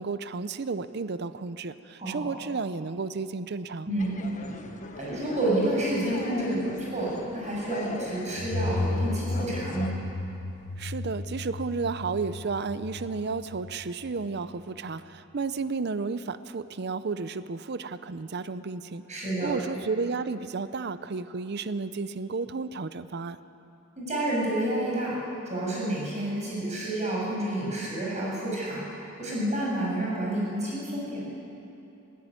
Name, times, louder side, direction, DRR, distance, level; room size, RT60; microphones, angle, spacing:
voice 1, 0.0-3.9 10.8-19.0 19.4-23.4, right 4 dB, 55° right, 13 dB, 0.6 m, -32 dB
voice 2, 2.0-2.3 3.9-4.2 5.0-9.9 19.1-19.5 24.0-25.2 25.5-28.8 29.2-31.2, right 1 dB, 35° right, -4 dB, 7.7 m, -29 dB
sound 1, 4.0-9.9, left 2 dB, 40° left, 1.4 m, -40 dB
sound 2, 8.4-14.9, left 2 dB, 55° left, 1.0 m, -34 dB
20.0 x 17.5 x 9.6 m, 2.9 s
head